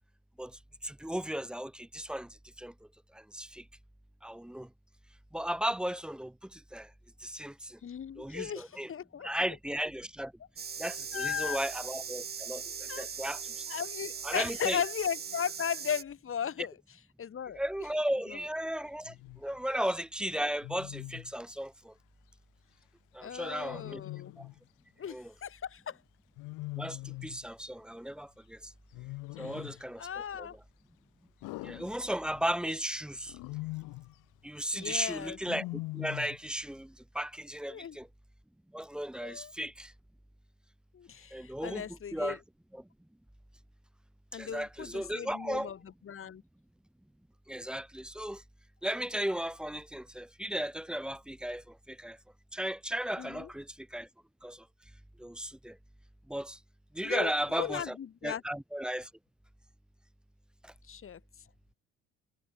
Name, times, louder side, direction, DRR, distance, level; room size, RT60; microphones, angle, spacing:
voice 1, 0.8-2.7 3.3-3.6 4.2-4.7 5.3-6.9 7.2-7.8 8.2-8.9 9.2-10.3 10.8-13.5 14.2-14.8 17.5-21.9 23.1-24.0 25.1-25.3 26.8-28.7 29.4-30.1 30.4-30.5 31.6-33.3 34.4-38.1 38.7-39.9 41.3-41.9 42.1-42.4 42.7-42.8 44.3-45.7 47.5-48.4 48.8-52.2 52.5-54.1 54.4-54.6 55.2-55.8 56.3-56.6 56.9-58.0 58.2-59.1 60.6-60.7, equal, 5° right, 0.6 m, -35 dB
voice 2, 7.8-9.3 11.1-11.6 12.9-13.1 13.7-16.8 17.2-17.6 18.3-18.4 19.7-19.8 23.2-24.3 25.0-26.0 29.4-30.6 34.7-35.4 37.7-38.0 39.2-39.5 40.9-42.4 44.3-46.4 53.2-53.5 57.0-57.3 57.6-58.4 60.9-61.2, left 8 dB, 45° left, 5.5 m, -37 dB
sound 1, 10.6-16.0, right 7 dB, 30° right, 1.6 m, -40 dB
Wild animals, 19.0-19.4 20.6-21.3 23.7-24.6 26.4-27.4 28.9-29.9 31.4-32.5 33.3-34.1 35.4-36.5, left 22 dB, 80° left, 1.2 m, -42 dB
cardioid pair, 95°, 31 cm